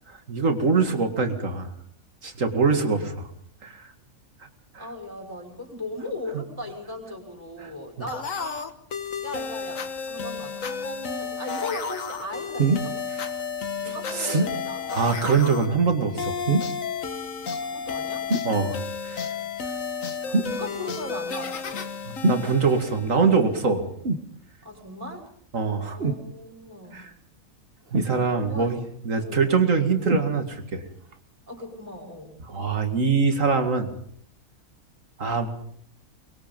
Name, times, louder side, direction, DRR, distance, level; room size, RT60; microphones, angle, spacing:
voice 1, 0.3-1.7 2.2-3.3 3.6-3.9 6.3-6.4 7.6-7.7 14.1-14.4 14.9-16.4 18.4-18.8 19.0-19.3 22.1-23.8 25.5-26.0 26.9-27.1 27.9-28.8 29.0-30.8 32.5-33.9 35.2-35.5, right 4 dB, 70° right, 6 dB, 2.6 m, -23 dB
voice 2, 4.8-8.7 9.2-13.0 13.8-15.0 17.5-18.3 20.2-21.9 24.6-25.2 25.9-27.0 28.5-28.8 29.1-29.7 31.5-32.4, left 1 dB, 15° right, 2 dB, 5.8 m, -37 dB
sound 1, 8.1-23.6, left 6 dB, 70° left, 1.8 m, -32 dB
sound 2, 12.6-12.9 14.3-14.6 16.5-16.8 18.3-18.5 20.3-20.6 22.2-22.5 24.0-24.3 26.0-26.3 27.9-28.5 30.0-30.3 31.1-31.2, right 3 dB, 45° right, 1.6 m, -24 dB
24.0 x 21.5 x 5.4 m, 0.62 s
omnidirectional pair, 1.4 m